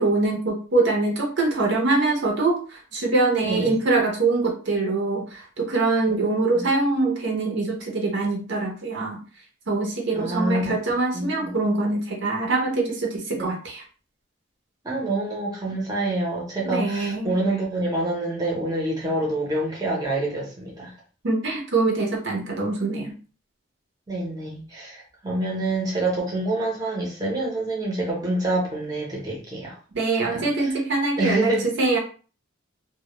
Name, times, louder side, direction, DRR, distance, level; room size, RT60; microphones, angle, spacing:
voice 1, 0.0-9.2 9.7-13.8 16.6-17.4 21.2-23.1 29.9-32.0, right 3 dB, 55° right, 0 dB, 0.6 m, -24 dB
voice 2, 6.1-6.6 10.2-10.7 11.1-11.5 13.4-13.5 14.8-20.9 24.1-29.8 30.2-30.8 31.2-31.7, right 1 dB, 20° right, -3 dB, 0.6 m, -27 dB
2.1 x 2.1 x 2.9 m, 0.37 s
head